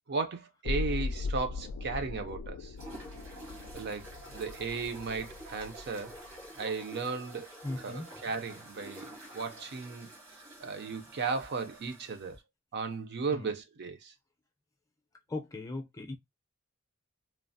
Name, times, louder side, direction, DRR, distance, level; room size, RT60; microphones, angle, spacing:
voice 1, 0.1-2.7 3.7-6.2 6.6-7.5 7.8-10.1 10.6-12.4 12.7-14.1, right 4 dB, 55° right, 0.5 m, -35 dB
sound 1, 0.6-6.6 6.9-7.0, left 3 dB, 85° left, 0.3 m, -39 dB
sound 2, 2.8-12.4, right 1 dB, 85° right, 1.6 m, -49 dB
voice 2, 7.6-8.1 13.3-13.5 15.3-16.1, left 2 dB, 15° left, 0.5 m, -38 dB
3.1 x 2.0 x 2.5 m
head